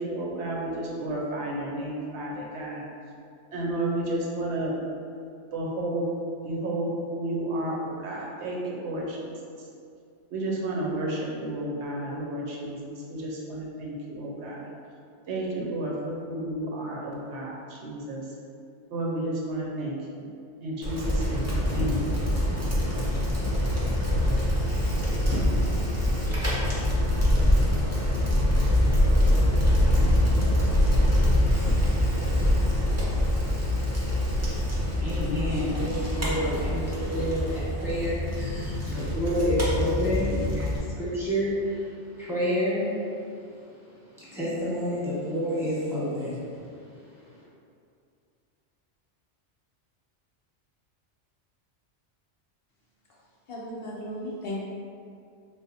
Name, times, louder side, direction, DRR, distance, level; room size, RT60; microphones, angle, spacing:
voice 1, 0.0-2.9 3.5-4.7 5.5-6.1 6.4-9.3 10.3-14.7 15.3-18.3 18.9-20.3 20.6-22.1, right 1 dB, 75° right, -3 dB, 0.9 m, -32 dB
Bicycle, 20.8-40.8, left 1 dB, 20° right, 0.5 m, -24 dB
voice 2, 35.0-47.4, equal, ahead, -11 dB, 0.9 m, -29 dB
voice 3, 53.5-54.6, left 1 dB, 65° left, -5 dB, 0.7 m, -35 dB
3.3 x 2.0 x 4.0 m, 2.4 s
omnidirectional pair, 1.2 m